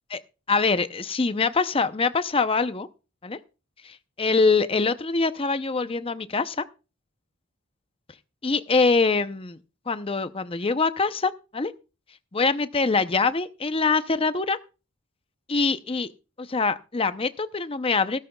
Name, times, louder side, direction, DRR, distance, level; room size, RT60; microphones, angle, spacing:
voice 1, 0.5-2.9 3.2-3.4 3.8-6.6 8.4-9.6 9.9-11.7 12.3-14.6 15.5-16.1 16.4-18.2, left 4 dB, 25° left, 0.6 m, -24 dB
16.0 x 13.0 x 2.3 m
head